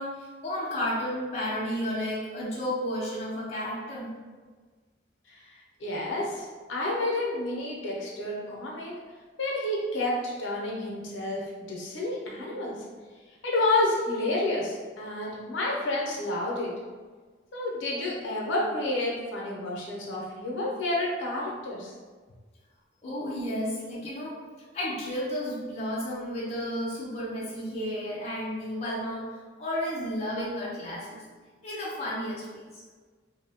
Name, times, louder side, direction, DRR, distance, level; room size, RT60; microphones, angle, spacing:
voice 1, 0.0-4.1 23.0-24.4 24.7-31.2 31.6-32.7, equal, 35° left, -7 dB, 0.5 m, -32 dB
voice 2, 5.3-8.9 9.4-12.8 13.4-16.7 17.5-21.9, left 2 dB, 75° left, -3 dB, 0.6 m, -30 dB
2.7 x 2.0 x 2.7 m, 1.4 s
head